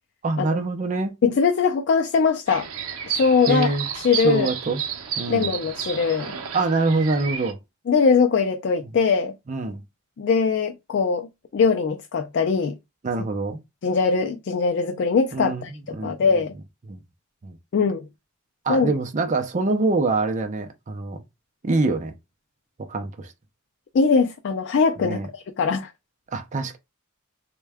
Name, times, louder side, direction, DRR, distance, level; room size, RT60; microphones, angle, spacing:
voice 1, 0.2-1.1 3.5-3.9 4.2-4.8 5.2-5.5 6.5-7.6 9.5-9.8 13.0-13.6 15.3-15.6 15.9-16.1 16.9-17.0 17.4-17.6 18.6-21.2 21.6-22.1 22.8-23.3 25.0-25.3 26.3-26.8, right 3 dB, 35° right, 0.5 m, -24 dB
voice 2, 1.2-2.7 3.1-3.7 4.0-4.5 5.3-6.4 7.9-9.3 10.2-11.3 11.5-12.8 13.8-16.5 17.7-18.1 18.7-18.9 23.9-25.9, left 5 dB, 55° left, 0.3 m, -21 dB
sound 1, 2.5-7.5, right 7 dB, 80° right, 0.6 m, -32 dB
3.5 x 2.2 x 3.4 m
head